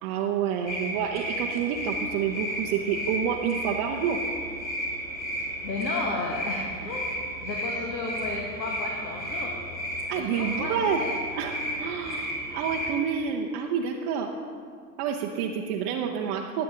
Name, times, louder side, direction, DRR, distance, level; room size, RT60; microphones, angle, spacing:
voice 1, 0.0-4.2 10.1-11.0 11.3-14.3 15.0-16.6, right 7 dB, 25° right, 0 dB, 0.4 m, -28 dB
sound 1, 0.7-13.0, equal, 5° left, 2.5 m, -33 dB
voice 2, 5.6-7.1 7.4-9.5 10.1-10.7 11.0-11.1, left 3 dB, 85° left, -2 dB, 1.7 m, -33 dB
16.5 x 7.7 x 3.7 m, 2.2 s
hypercardioid pair, 105°, 49 cm